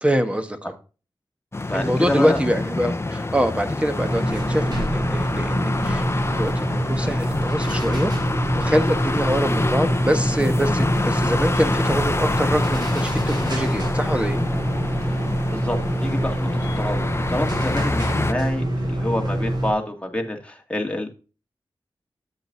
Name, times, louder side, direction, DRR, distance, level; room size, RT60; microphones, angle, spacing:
voice 1, 0.0-0.7 1.7-8.1 8.5-14.4, equal, 15° right, 7 dB, 1.3 m, -24 dB
sound 1, 1.5-18.3, left 2 dB, 30° left, 0.7 m, -27 dB
voice 2, 1.7-2.4 15.0-15.2 15.5-16.5 16.8-21.1, left 1 dB, 15° left, 2 dB, 2.1 m, -27 dB
sound 2, 3.9-19.7, equal, 55° right, 3.7 m, -25 dB
9.1 x 7.7 x 2.7 m, 0.34 s
wide cardioid pair, 60°, 9 cm